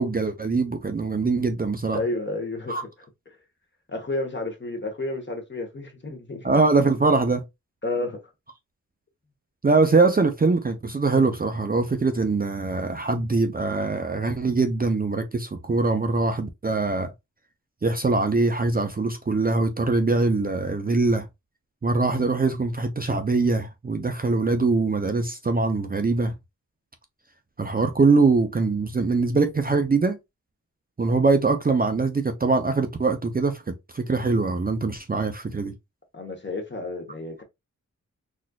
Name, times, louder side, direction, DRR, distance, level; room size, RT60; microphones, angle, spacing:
voice 1, 0.0-2.0 2.7-2.8 6.4-7.4 9.6-17.1 17.8-21.3 21.8-26.3 27.6-30.2 31.0-35.7, right 3 dB, 30° right, 0.5 m, -23 dB
voice 2, 1.9-2.9 3.9-6.5 7.8-8.2 36.1-37.4, left 2 dB, 35° left, 1.0 m, -31 dB
4.1 x 2.5 x 2.3 m
wide cardioid pair, 85°, 32 cm